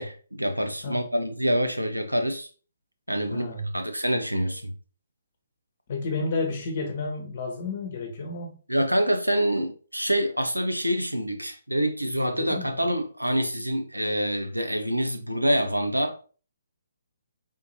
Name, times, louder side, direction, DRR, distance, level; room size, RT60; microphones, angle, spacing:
voice 1, 0.0-2.5 3.1-3.5 3.7-4.7 8.7-16.2, equal, 90° right, 0.6 m, -26 dB
voice 2, 3.3-3.7 5.9-8.5 12.2-12.9, left 3 dB, 40° left, 0.9 m, -31 dB
3.6 x 2.8 x 2.7 m
figure-of-eight pair, 135°, 0 cm